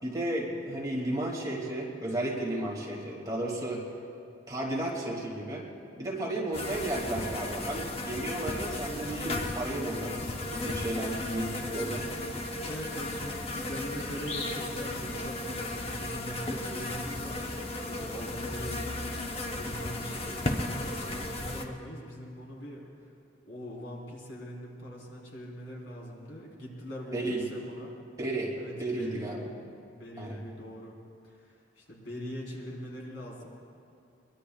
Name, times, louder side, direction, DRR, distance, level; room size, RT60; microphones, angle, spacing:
voice 1, 0.0-3.9 4.5-5.7 6.0-12.1 27.1-27.4 28.2-28.5 28.8-29.5 30.2-30.4, right 1 dB, 20° right, -3 dB, 2.3 m, -33 dB
sound 1, 6.5-21.6, left 2 dB, 30° left, 0.9 m, -35 dB
voice 2, 12.5-19.1 19.5-22.9 23.4-27.9 28.6-29.3 30.0-30.9 31.2-33.5, equal, 80° left, -3 dB, 4.0 m, -42 dB
22.5 x 22.5 x 2.4 m, 2.4 s
head